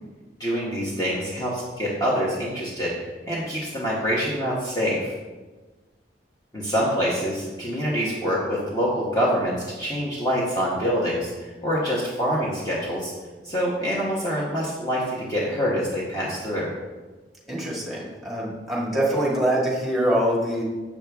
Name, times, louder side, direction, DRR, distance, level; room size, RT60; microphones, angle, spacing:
voice 1, 0.4-3.0 3.3-5.1 6.5-13.1 13.4-16.7, equal, 20° left, -6 dB, 1.1 m, -25 dB
voice 2, 17.5-20.6, right 1 dB, ahead, -5 dB, 1.7 m, -24 dB
7.3 x 6.4 x 3.5 m, 1.3 s
head